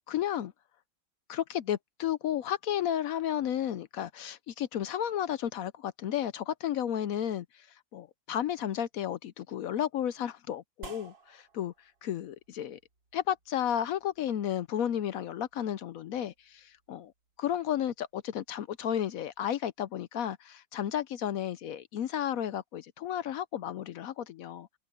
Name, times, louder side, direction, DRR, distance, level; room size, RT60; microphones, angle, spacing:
voice 1, 0.1-0.5 1.3-11.7 12.0-12.8 13.1-17.1 17.4-24.7, left 10 dB, 65° left, 0.9 m, -33 dB
sound 1, 10.8-19.6, right 3 dB, 80° right, 4.7 m, -56 dB
open air
omnidirectional pair, 1.9 m